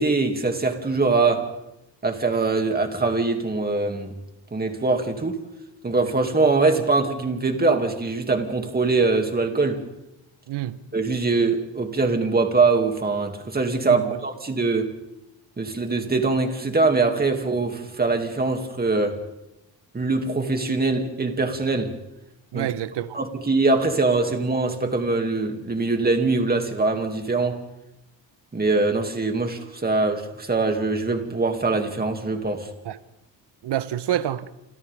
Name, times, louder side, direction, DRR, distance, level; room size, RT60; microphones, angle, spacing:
voice 1, 0.0-1.5 2.0-4.1 4.5-5.4 5.8-9.8 10.9-14.9 15.6-19.2 19.9-21.9 22.5-22.7 23.1-27.6 28.5-32.7, right 3 dB, 20° right, 2.5 m, -23 dB
voice 2, 10.5-10.8 13.8-14.2 22.5-23.2 32.9-33.0 33.6-34.5, right 11 dB, 65° right, 1.1 m, -27 dB
29.0 x 26.0 x 3.6 m
cardioid pair, 135°, 45 cm